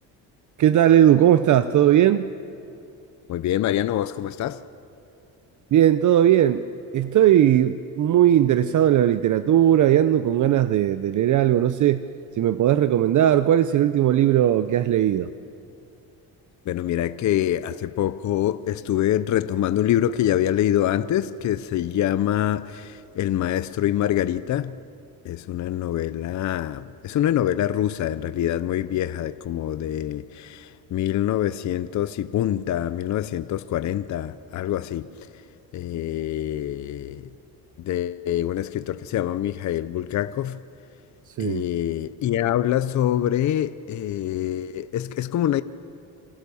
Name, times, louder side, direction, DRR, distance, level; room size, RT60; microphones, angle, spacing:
voice 1, 0.6-2.3 5.7-6.7 6.9-12.0 12.4-15.3 41.3-41.6, right 11 dB, 50° right, 0.7 m, -18 dB
voice 2, 3.3-4.6 16.7-24.8 25.2-35.3 35.7-37.3 37.8-40.6 41.4-45.6, left 11 dB, 45° left, 0.7 m, -25 dB
27.5 x 26.0 x 7.0 m
cardioid pair, 140°, 39 cm